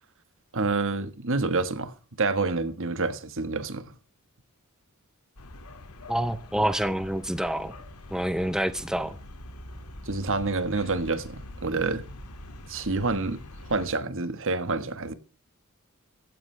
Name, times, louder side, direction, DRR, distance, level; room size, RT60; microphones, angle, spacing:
voice 1, 0.5-3.9 10.1-12.0 12.7-13.4 13.7-15.1, right 3 dB, 60° right, 1.5 m, -28 dB
sound 1, 5.4-13.9, left 1 dB, 85° left, 2.4 m, -44 dB
voice 2, 6.1-7.7 8.1-9.2, right 1 dB, 5° right, 0.7 m, -27 dB
15.5 x 14.5 x 3.4 m
head